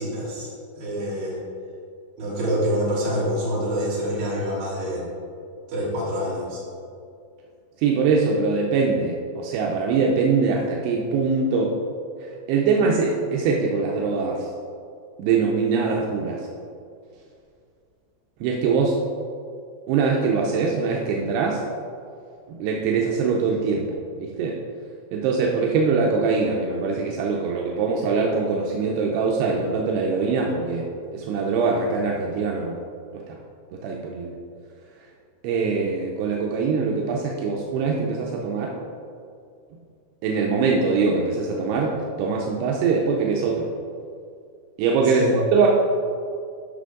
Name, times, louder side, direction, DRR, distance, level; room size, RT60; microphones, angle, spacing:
voice 1, 0.0-1.4 2.2-5.0 5.7-6.6 45.0-45.3, equal, 45° right, -7 dB, 3.3 m, -26 dB
voice 2, 7.8-11.7 12.5-14.5 15.2-16.5 18.4-18.9 19.9-21.6 22.5-24.6 25.1-30.9 31.1-32.8 33.1-33.4 33.7-34.4 35.4-38.7 40.2-43.7 44.8-45.7, right 4 dB, 85° right, -1 dB, 2.4 m, -23 dB
12.0 x 6.0 x 3.8 m, 2.3 s
omnidirectional pair, 5.7 m